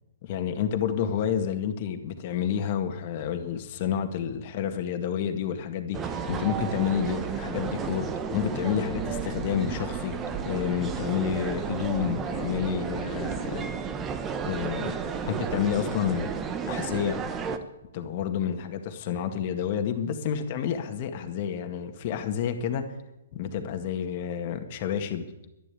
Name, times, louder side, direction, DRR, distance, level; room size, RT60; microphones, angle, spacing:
voice 1, 0.2-10.1 10.4-13.7 14.4-14.9 15.2-16.3 16.6-17.2 17.9-22.8 23.3-25.3, left 8 dB, 45° left, 6 dB, 1.9 m, -29 dB
sound 1, 5.9-17.6, right 6 dB, 20° right, 1.2 m, -32 dB
12.0 x 11.5 x 8.5 m, 0.93 s
hypercardioid pair, 140°, 0 cm